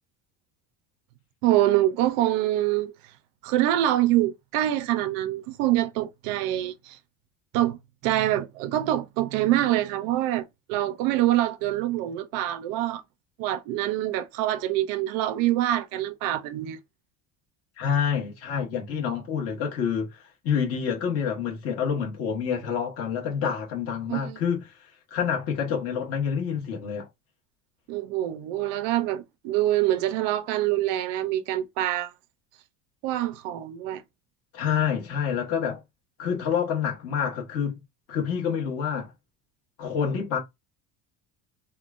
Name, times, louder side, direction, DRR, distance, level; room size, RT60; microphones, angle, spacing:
voice 1, 1.4-2.9 3.4-7.0 7.5-7.8 8.0-13.0 13.4-16.8 24.1-24.4 27.9-32.1 33.0-34.0, right 14 dB, 60° right, 0.6 m, -25 dB
voice 2, 17.8-24.6 25.1-27.1 34.5-35.8 36.2-37.8 38.1-39.1 39.8-40.4, left 7 dB, 40° left, 1.3 m, -27 dB
3.6 x 2.3 x 2.4 m
cardioid pair, 175°, 38 cm